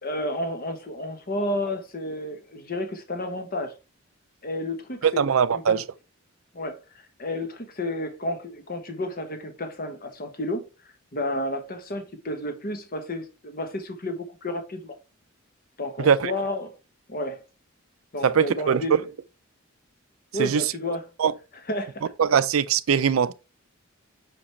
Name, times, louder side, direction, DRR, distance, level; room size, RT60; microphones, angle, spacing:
voice 1, 0.0-3.7 4.4-5.2 5.5-5.8 6.5-6.8 7.2-10.6 11.1-15.0 15.8-16.7 17.1-17.4 18.1-18.9 20.3-21.0 21.7-21.9, left 1 dB, 45° left, 1.1 m, -31 dB
voice 2, 5.0-5.8 16.0-16.3 18.2-18.8 20.4-20.6 21.2-21.3 22.2-23.3, right 7 dB, 85° right, 0.5 m, -21 dB
6.1 x 5.0 x 3.2 m
head